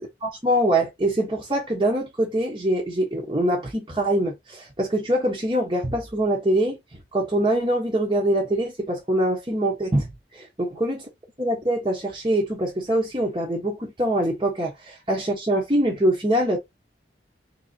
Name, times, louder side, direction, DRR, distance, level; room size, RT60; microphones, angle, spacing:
voice 1, 0.2-6.8 7.1-10.1 10.3-11.0 11.4-16.6, right 1 dB, 25° right, 1.1 m, -24 dB
4.0 x 2.8 x 3.9 m
head